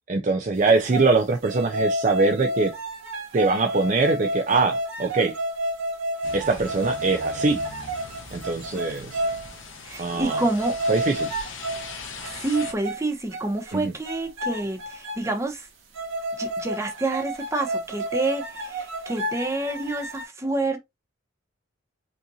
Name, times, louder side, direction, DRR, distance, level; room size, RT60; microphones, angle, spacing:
voice 1, 0.1-2.7 3.3-5.4 6.3-7.6 8.3-9.2 10.0-10.4 10.9-11.3 13.7-13.9, right 3 dB, 40° right, 0.4 m, -23 dB
sound 1, 0.7-1.1 1.4-9.5 9.9-10.0 10.3-11.9 12.2-13.0 13.3-13.7 14.1-15.4 15.9-20.2, right 1 dB, 80° right, 1.7 m, -30 dB
sound 2, 6.2-12.7, left 4 dB, 75° left, 1.3 m, -40 dB
voice 2, 9.8-10.7 12.2-15.7 16.4-20.8, right 2 dB, 15° right, 1.0 m, -28 dB
5.4 x 2.5 x 2.7 m
head